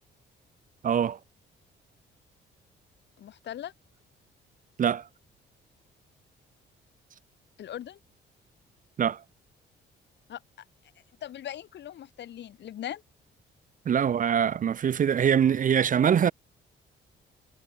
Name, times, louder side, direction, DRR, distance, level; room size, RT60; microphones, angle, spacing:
voice 1, 0.8-1.2 4.8-5.0 9.0-9.2 13.9-16.3, right 8 dB, 40° right, 0.6 m, -23 dB
voice 2, 3.2-3.7 7.6-8.0 10.3-10.4 11.2-13.0, left 11 dB, 65° left, 1.1 m, -39 dB
cardioid pair, 90°, 20 cm